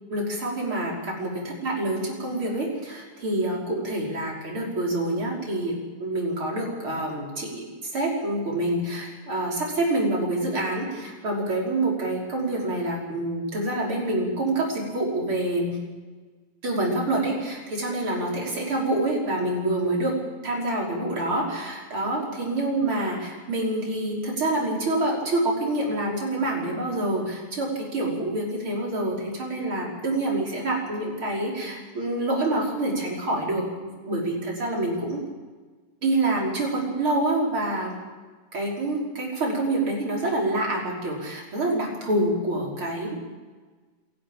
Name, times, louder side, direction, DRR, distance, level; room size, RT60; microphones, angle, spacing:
voice 1, 0.1-15.7 16.6-20.2 20.4-35.2 36.0-38.0 38.5-43.2, right 1 dB, 40° right, -2 dB, 6.0 m, -27 dB
26.5 x 12.5 x 8.7 m, 1.4 s
omnidirectional pair, 3.6 m